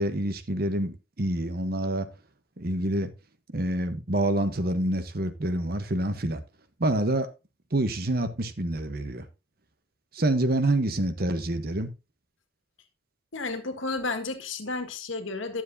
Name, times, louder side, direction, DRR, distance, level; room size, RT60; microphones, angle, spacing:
voice 1, 0.0-2.1 2.6-3.1 3.5-6.4 6.8-7.3 7.7-9.3 10.1-11.9, right 1 dB, 50° right, 1.0 m, -27 dB
voice 2, 13.3-15.6, left 3 dB, 80° left, 1.7 m, -32 dB
12.0 x 7.5 x 2.6 m
head